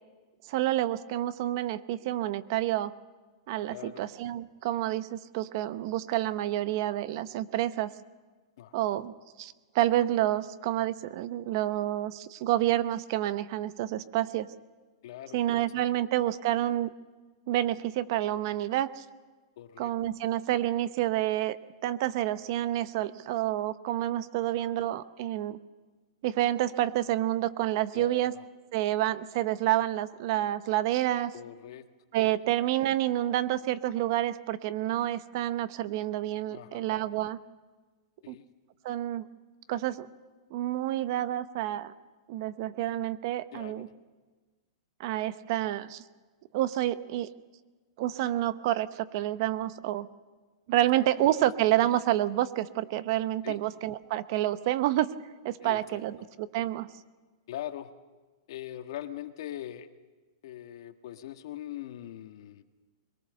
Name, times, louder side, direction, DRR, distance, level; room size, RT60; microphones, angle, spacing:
voice 1, 0.5-2.9 3.5-7.9 8.7-14.5 15.3-16.9 17.5-19.0 19.8-21.6 21.8-25.6 26.2-28.3 28.7-31.3 32.1-37.4 38.3-38.4 38.8-39.3 39.7-40.1 40.5-41.9 42.3-43.9 45.0-46.0 46.5-47.3 48.0-50.1 50.7-55.1 55.4-56.9, right 13 dB, 55° right, 14 dB, 0.9 m, -29 dB
voice 2, 3.7-4.0 8.6-8.7 15.0-15.4 19.6-19.9 24.6-24.7 27.9-28.3 31.3-31.9 36.5-36.9 38.2-38.4 43.5-43.9 53.4-53.6 55.6-56.0 57.5-57.9 58.5-59.9 60.4-62.6, left 12 dB, 65° left, 8 dB, 1.5 m, -41 dB
22.0 x 18.5 x 6.7 m, 1.3 s
hypercardioid pair, 140°, 3 cm